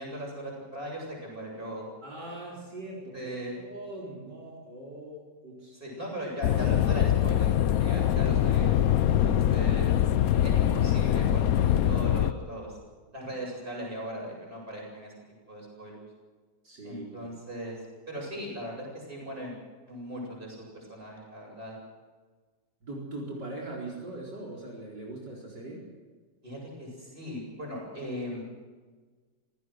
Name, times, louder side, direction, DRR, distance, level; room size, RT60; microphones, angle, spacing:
voice 1, 0.0-1.8 3.1-3.5 5.7-8.8 9.2-10.0 10.4-12.8 13.1-15.1 15.5-16.1 16.8-17.8 18.1-19.6 19.9-21.8 26.4-28.4, equal, 30° right, -2 dB, 8.1 m, -38 dB
voice 2, 2.0-5.8 16.6-17.3 22.8-25.8, right 2 dB, 70° right, -3 dB, 5.1 m, -41 dB
sound 1, 6.4-12.3, left 11 dB, 60° left, 1.1 m, -23 dB
27.0 x 16.5 x 6.5 m, 1.4 s
omnidirectional pair, 1.9 m